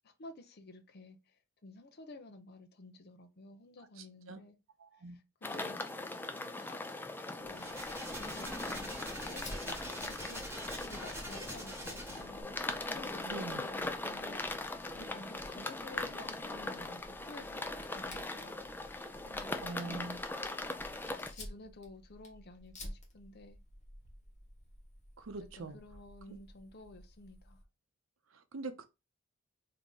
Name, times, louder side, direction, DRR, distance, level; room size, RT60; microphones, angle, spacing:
voice 1, 0.0-4.6 5.0-5.8 6.6-6.8 7.3-7.7 8.2-10.4 10.8-12.6 12.8-18.9 19.2-20.1 21.3-23.6 25.6-27.6, left 2 dB, 50° left, 0.6 m, -52 dB
voice 2, 4.0-4.4 4.8-5.1 13.2-13.6 19.6-20.2 25.2-25.8 26.3-26.4 28.3-28.9, right 3 dB, 75° right, 0.6 m, -43 dB
sound 1, 5.4-21.3, left 2 dB, 10° left, 0.3 m, -40 dB
sound 2, 7.4-12.4, equal, 10° right, 1.5 m, -44 dB
Fire, 9.4-27.6, left 1 dB, 35° left, 1.1 m, -53 dB
3.6 x 2.8 x 3.8 m
head